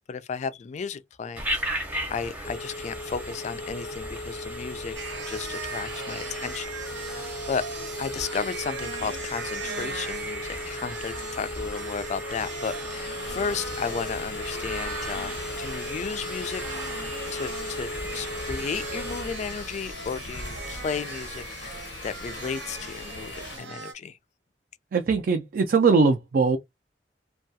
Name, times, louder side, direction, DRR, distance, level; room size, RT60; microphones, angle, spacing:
voice 1, 0.1-1.8 2.1-5.0 5.3-7.6 8.0-24.2, left 6 dB, 40° left, 0.3 m, -34 dB
Telephone, 1.4-19.5, equal, 10° right, 0.7 m, -35 dB
sound 1, 5.0-23.9, right 4 dB, 85° right, 0.9 m, -39 dB
sound 2, 13.2-23.6, left 4 dB, 80° left, 0.6 m, -41 dB
voice 2, 24.9-26.6, right 4 dB, 55° right, 0.4 m, -21 dB
2.3 x 2.3 x 2.6 m
head